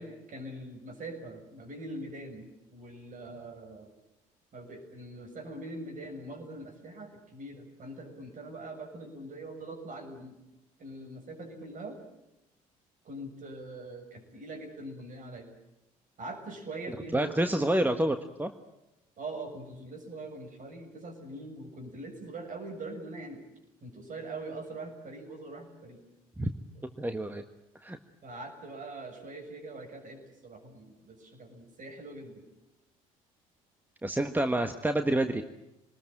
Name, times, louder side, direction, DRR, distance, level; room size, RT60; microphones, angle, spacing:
voice 1, 0.0-3.9 4.5-10.4 10.8-12.0 13.0-15.5 16.2-17.5 19.2-23.4 23.8-26.0 28.2-32.5, right 2 dB, 45° right, 5 dB, 6.9 m, -43 dB
voice 2, 17.1-18.5 26.4-26.5 27.0-27.4 27.8-28.0 34.0-35.4, right 1 dB, 10° right, 8 dB, 1.5 m, -28 dB
25.0 x 20.0 x 9.0 m, 0.93 s
hypercardioid pair, 55°, 18 cm